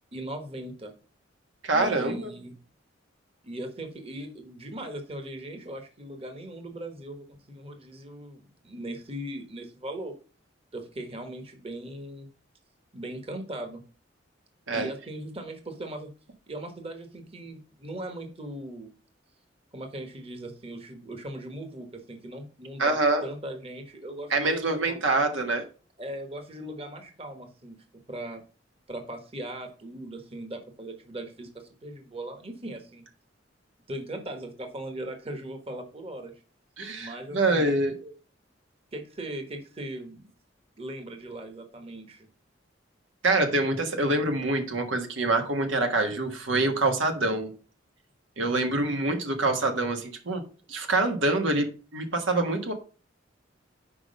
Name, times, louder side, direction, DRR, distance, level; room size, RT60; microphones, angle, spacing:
voice 1, 0.1-0.9 1.7-2.5 3.4-10.1 10.7-12.3 12.9-13.8 14.7-16.1 16.5-18.9 19.7-23.0 23.2-25.0 26.0-27.8 28.1-28.4 28.9-33.0 33.9-36.3 37.0-37.7 38.0-38.2 38.9-40.2 40.8-42.3, right 1 dB, 30° right, 5 dB, 1.3 m, -39 dB
voice 2, 1.6-2.3 14.7-14.9 22.8-23.3 24.3-25.6 36.8-38.0 43.2-47.5 48.4-50.4 50.7-52.7, right 2 dB, 80° right, 5 dB, 1.4 m, -25 dB
6.1 x 4.9 x 5.2 m, 0.36 s
head